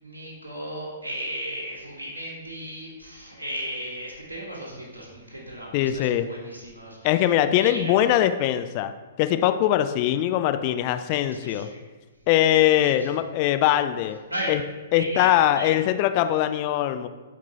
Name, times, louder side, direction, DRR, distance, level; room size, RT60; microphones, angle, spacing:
voice 1, 0.0-7.3 7.6-8.0 11.3-11.8 12.8-13.1 14.3-14.5 15.0-15.3 15.6-15.7, equal, 85° right, -4 dB, 1.5 m, -35 dB
voice 2, 5.7-6.3 7.0-8.9 9.2-11.7 12.3-14.2 14.5-14.6 14.9-17.1, left 12 dB, 40° left, 10 dB, 0.3 m, -22 dB
7.9 x 4.4 x 2.8 m, 1.3 s
figure-of-eight pair, 115°, 0 cm